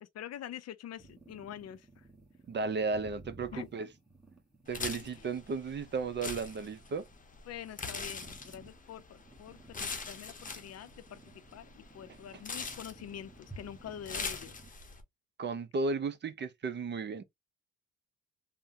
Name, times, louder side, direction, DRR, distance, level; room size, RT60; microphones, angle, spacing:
voice 1, 0.0-2.1 3.5-3.7 4.7-5.3 7.5-11.2 11.5-14.6, left 10 dB, 55° left, 0.5 m, -46 dB
sound 1, 1.0-14.7, right 2 dB, ahead, 1.3 m, -55 dB
voice 2, 2.5-3.9 4.7-7.1 15.4-17.2, right 4 dB, 35° right, 0.5 m, -34 dB
sound 2, 4.7-15.0, left 4 dB, 25° left, 0.8 m, -43 dB
3.4 x 2.1 x 2.6 m
cardioid pair, 90°, 30 cm